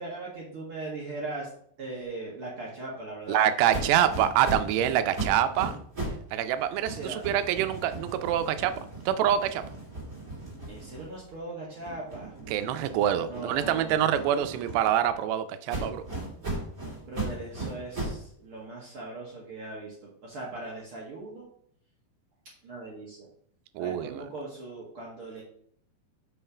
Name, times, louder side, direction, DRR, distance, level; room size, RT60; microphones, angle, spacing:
voice 1, 0.0-1.5 1.8-3.4 6.9-7.2 10.7-12.3 13.3-14.2 17.0-21.5 22.6-23.3 23.8-25.4, right 2 dB, 65° right, -3 dB, 1.3 m, -39 dB
voice 2, 3.3-5.7 6.3-8.7 9.1-9.6 12.5-16.0 23.8-24.2, right 10 dB, 85° right, 10 dB, 2.8 m, -26 dB
sound 1, 3.7-6.3 6.6-11.4 11.8-15.1 15.7-18.3, right 2 dB, 20° right, 2.8 m, -37 dB
6.3 x 5.6 x 5.0 m, 0.62 s
omnidirectional pair, 4.9 m